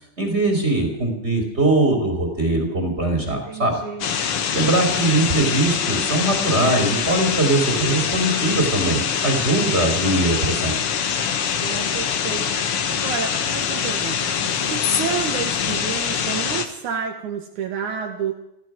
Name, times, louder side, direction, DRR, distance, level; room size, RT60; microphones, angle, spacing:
voice 1, 0.2-3.8 4.5-10.7, right 2 dB, 20° right, 3 dB, 3.0 m, -21 dB
voice 2, 3.3-4.1 11.6-18.3, right 7 dB, 75° right, 2 dB, 2.9 m, -30 dB
sound 1, 4.0-16.7, left 7 dB, 55° left, 1.9 m, -24 dB
16.0 x 15.0 x 6.1 m, 0.83 s
omnidirectional pair, 3.5 m